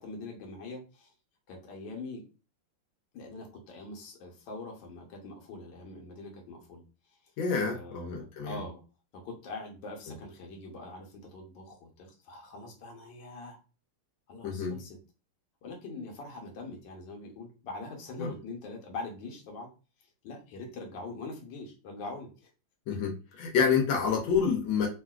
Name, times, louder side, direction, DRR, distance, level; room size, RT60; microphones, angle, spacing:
voice 1, 0.0-1.1 1.5-2.2 3.1-6.8 7.1-7.3 7.7-8.8 9.1-13.6 14.3-15.0 15.6-19.7 20.2-22.5 22.9-23.0, left 3 dB, 70° left, 0 dB, 1.5 m, -43 dB
voice 2, 7.4-8.6 14.4-14.8 18.2-18.3 22.9-23.1 23.4-24.9, left 6 dB, 90° left, 0 dB, 1.5 m, -28 dB
3.6 x 2.4 x 2.3 m, 0.32 s
omnidirectional pair, 2.1 m